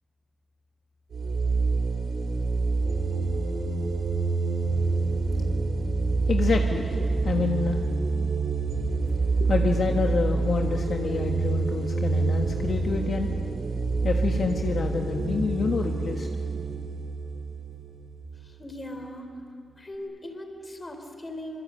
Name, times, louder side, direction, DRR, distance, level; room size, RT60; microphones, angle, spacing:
sound 1, 1.1-18.5, right 3 dB, 60° right, 3.7 m, -27 dB
voice 1, 6.3-7.8 9.4-13.3 14.0-16.3, left 4 dB, 50° left, 2 dB, 1.5 m, -28 dB
voice 2, 18.4-19.3 19.8-21.6, left 1 dB, 20° left, 5 dB, 3.6 m, -39 dB
26.5 x 24.5 x 8.8 m, 2.5 s
wide cardioid pair, 160°, 0 cm